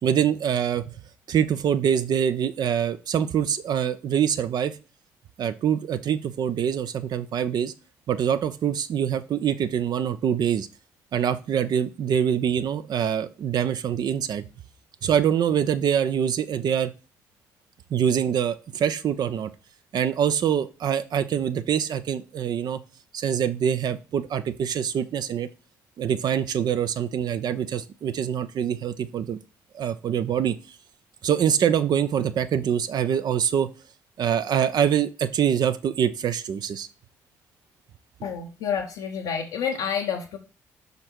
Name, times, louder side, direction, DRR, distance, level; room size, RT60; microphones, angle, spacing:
voice 1, 0.0-0.8 1.3-4.8 5.4-7.7 8.1-10.7 11.1-14.5 15.0-16.9 17.9-19.5 19.9-22.8 23.1-25.5 26.0-29.4 29.7-30.6 31.2-33.7 34.2-36.9, right 8 dB, 55° right, 12 dB, 0.6 m, -24 dB
voice 2, 38.2-40.4, left 7 dB, 75° left, -2 dB, 0.8 m, -29 dB
5.3 x 4.0 x 4.5 m, 0.34 s
hypercardioid pair, 50°, 8 cm